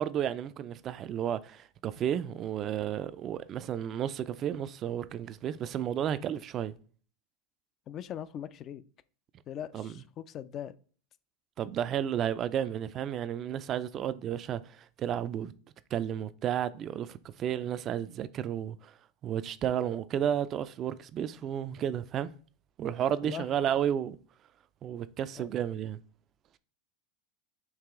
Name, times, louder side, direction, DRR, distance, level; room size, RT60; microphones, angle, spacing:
voice 1, 0.0-6.7 9.7-9.9 11.6-15.5 15.9-18.9 19.2-22.3 22.8-24.2 24.8-26.0, right 9 dB, 40° right, 0.3 m, -32 dB
voice 2, 7.9-8.8 9.5-10.8 23.2-23.5 25.4-25.5, left 10 dB, 40° left, 0.3 m, -40 dB
4.7 x 2.9 x 3.7 m
hypercardioid pair, 105°, 0 cm